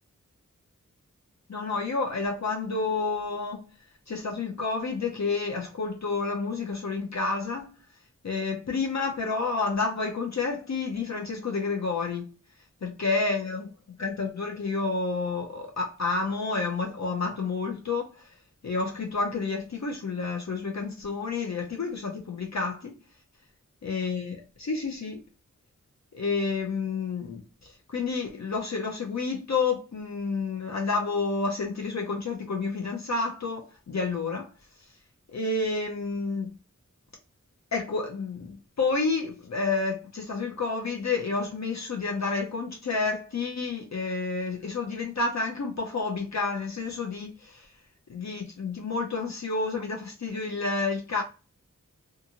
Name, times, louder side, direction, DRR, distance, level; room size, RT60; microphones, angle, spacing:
voice 1, 1.5-3.7 4.1-7.7 8.2-12.3 12.8-18.3 18.6-22.9 23.8-25.2 26.1-34.5 35.3-36.5 37.7-47.7 48.1-51.2, left 4 dB, 60° left, 0.5 m, -30 dB
2.5 x 2.5 x 2.8 m
wide cardioid pair, 50°, 31 cm